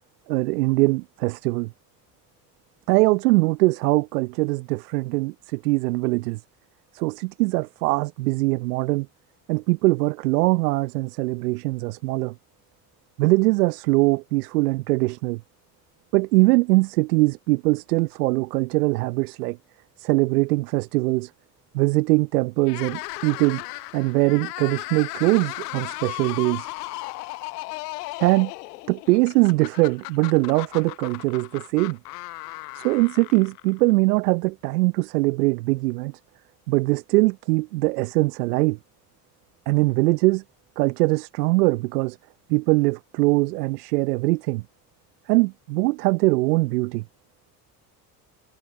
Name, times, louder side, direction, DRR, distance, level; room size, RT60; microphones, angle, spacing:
voice 1, 0.3-1.7 2.9-6.4 6.9-9.1 9.5-12.3 13.2-15.4 16.1-19.6 20.0-21.3 21.7-23.6 23.9-26.7 28.2-28.5 28.9-32.0 32.7-36.1 36.7-38.8 39.7-40.4 40.8-42.2 42.5-44.6 45.3-47.0, right 23 dB, 75° right, 0.8 m, -22 dB
sound 1, 22.6-33.9, left 22 dB, 75° left, 0.9 m, -36 dB
hypercardioid pair, 60°, 48 cm